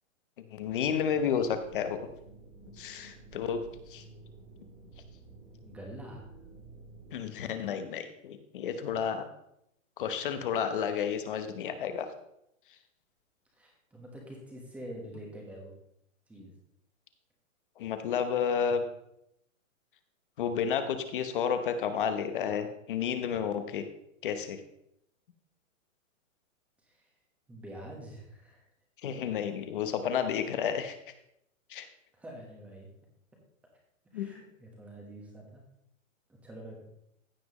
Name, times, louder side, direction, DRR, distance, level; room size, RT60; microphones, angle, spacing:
voice 1, 0.5-2.0 2.8-3.6 3.9-4.0 7.1-9.3 10.0-12.1 17.8-18.8 20.4-23.8 24.2-24.6 29.0-31.0 31.7-31.9 34.1-34.3, left 7 dB, 40° left, 9 dB, 1.0 m, -31 dB
sound 1, 0.7-7.2, right 3 dB, 25° right, 2.3 m, -52 dB
voice 2, 5.6-6.3 13.5-15.7 16.3-16.5 26.8-27.1 27.5-28.7 32.1-32.9 34.1-35.6 36.3-36.8, right 1 dB, 5° right, -1 dB, 1.2 m, -46 dB
15.0 x 5.9 x 3.1 m, 0.77 s
hypercardioid pair, 165°, 41 cm